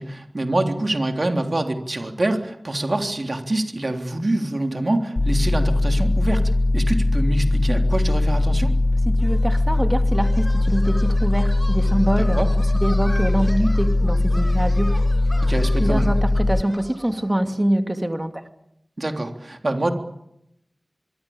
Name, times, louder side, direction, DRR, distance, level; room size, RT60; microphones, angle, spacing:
voice 1, 0.0-8.7 12.3-12.5 15.4-16.1 19.0-19.9, right 1 dB, 50° right, 4 dB, 3.4 m, -25 dB
sound 1, 5.2-16.6, left 2 dB, 50° left, 1.0 m, -20 dB
voice 2, 9.1-12.4 12.8-14.9 15.8-18.4, right 1 dB, 20° right, 6 dB, 2.5 m, -24 dB
sound 2, 9.2-17.3, equal, 10° left, 5.8 m, -39 dB
24.5 x 24.0 x 8.8 m, 0.83 s
wide cardioid pair, 65°, 0 cm